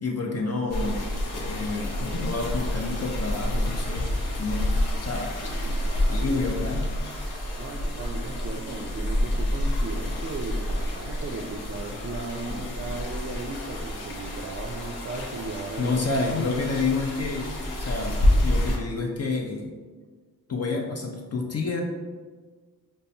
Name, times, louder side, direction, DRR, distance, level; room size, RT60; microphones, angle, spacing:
voice 1, 0.0-4.1 4.4-4.7 5.0-5.4 6.1-6.9 12.5-12.7 15.8-19.7 20.5-21.8, left 3 dB, 40° left, 0 dB, 0.5 m, -29 dB
sound 1, 0.7-18.8, left 1 dB, 85° left, 0.7 m, -28 dB
voice 2, 5.4-6.3 7.6-16.0, right 3 dB, 40° right, -1 dB, 0.4 m, -36 dB
5.2 x 2.1 x 2.6 m, 1.4 s
cardioid pair, 55°, 38 cm